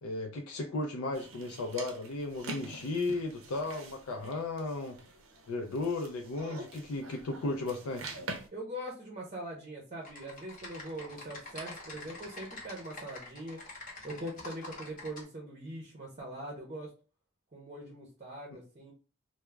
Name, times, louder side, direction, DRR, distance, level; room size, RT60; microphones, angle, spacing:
voice 1, 0.0-5.0 5.5-8.2, left 2 dB, 90° left, 0.4 m, -35 dB
sound 1, 1.1-8.5, right 3 dB, 75° right, 0.5 m, -46 dB
voice 2, 8.5-13.6 14.0-16.9 17.5-18.9, right 1 dB, 30° right, 0.6 m, -42 dB
Typing, 10.0-15.2, left 2 dB, 40° left, 0.8 m, -46 dB
2.3 x 2.0 x 3.1 m
head